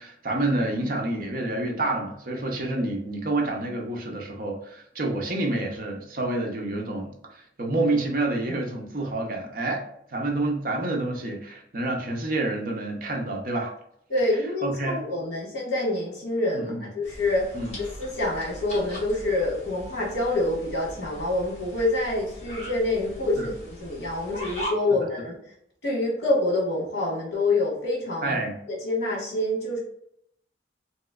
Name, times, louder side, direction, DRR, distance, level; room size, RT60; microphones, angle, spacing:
voice 1, 0.0-13.7 14.6-15.0 16.5-16.9 17.5-17.7 23.4-23.5 28.2-28.6, right 2 dB, 50° right, 1 dB, 0.6 m, -28 dB
voice 2, 14.1-17.5 18.0-23.5 23.8-25.4 25.8-28.4 28.7-29.8, left 2 dB, 70° left, -3 dB, 1.3 m, -26 dB
sound 1, 17.0-24.7, equal, 40° left, 1.0 m, -40 dB
3.0 x 3.0 x 2.3 m, 0.71 s
head